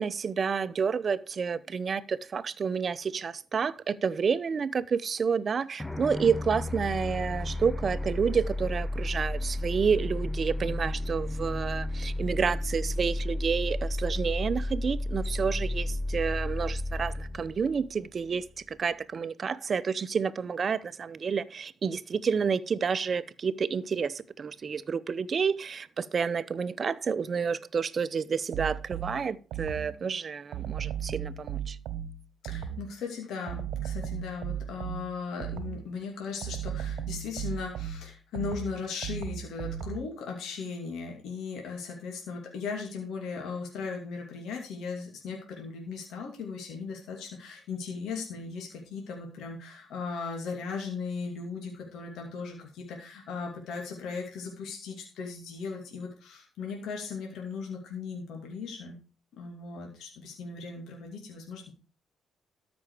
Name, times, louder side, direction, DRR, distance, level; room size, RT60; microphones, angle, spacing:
voice 1, 0.0-31.8, right 6 dB, 45° right, 0.6 m, -29 dB
sound 1, 5.8-18.5, left 1 dB, 10° left, 0.6 m, -32 dB
sound 2, 28.5-30.1 30.5-33.0 33.5-35.9 36.4-40.2, right 9 dB, 85° right, 1.0 m, -36 dB
voice 2, 32.4-59.0 59.3-61.7, left 5 dB, 80° left, 2.7 m, -37 dB
13.0 x 6.2 x 4.9 m
cardioid pair, 90°, 0 cm